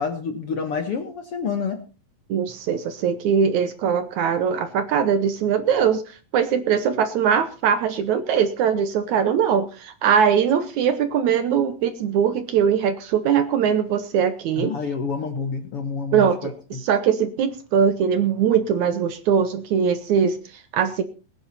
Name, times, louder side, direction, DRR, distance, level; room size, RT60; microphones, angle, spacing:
voice 1, 0.0-1.8 14.6-16.8, left 5 dB, 55° left, 6 dB, 1.7 m, -28 dB
voice 2, 2.3-14.7 16.1-21.0, right 7 dB, 65° right, 11 dB, 2.0 m, -21 dB
20.0 x 10.5 x 4.2 m, 0.34 s
omnidirectional pair, 4.1 m